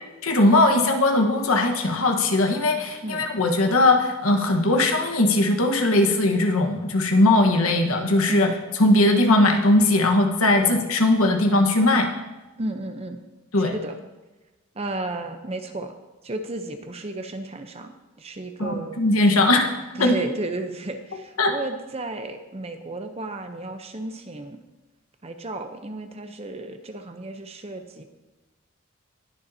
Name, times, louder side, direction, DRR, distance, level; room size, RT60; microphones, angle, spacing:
voice 1, 0.2-8.5 8.8-12.1 13.5-13.7 18.6-19.7 19.9-20.1 21.4-21.5, left 2 dB, 90° left, 3 dB, 1.3 m, -19 dB
voice 2, 10.5-10.8 12.6-13.2 13.6-14.0 14.7-15.9 16.2-17.9 18.2-19.0 19.9-24.6 25.2-28.0, right 2 dB, 30° right, 7 dB, 0.7 m, -33 dB
19.5 x 6.9 x 2.8 m, 1.1 s
head